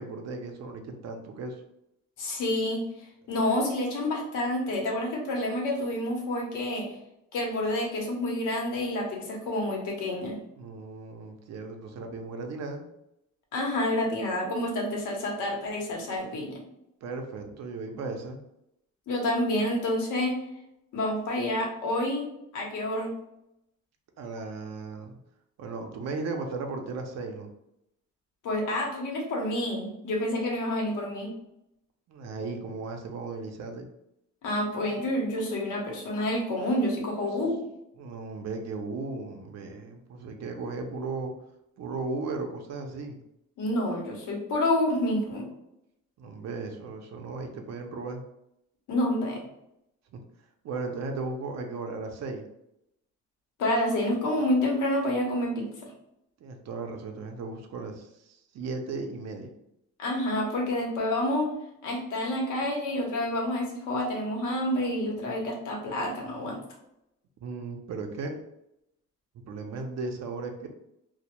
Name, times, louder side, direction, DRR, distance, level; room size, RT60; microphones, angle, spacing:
voice 1, 0.0-1.6 10.6-12.9 17.0-18.4 24.2-25.2 25.6-27.5 32.1-33.9 37.3-37.4 38.0-41.3 41.8-43.2 46.2-48.2 50.1-50.2 50.6-52.5 56.4-59.5 67.4-68.4 69.5-70.7, right 3 dB, 60° right, 4 dB, 0.5 m, -36 dB
voice 2, 2.2-2.8 3.3-6.9 7.3-10.4 13.5-16.6 19.1-20.4 20.9-23.1 28.4-31.3 34.4-37.6 43.6-45.5 48.9-49.4 53.6-55.9 60.0-61.5 61.8-66.6, left 1 dB, 85° left, 0 dB, 0.8 m, -28 dB
2.1 x 2.0 x 2.9 m, 0.83 s
cardioid pair, 90°, 30 cm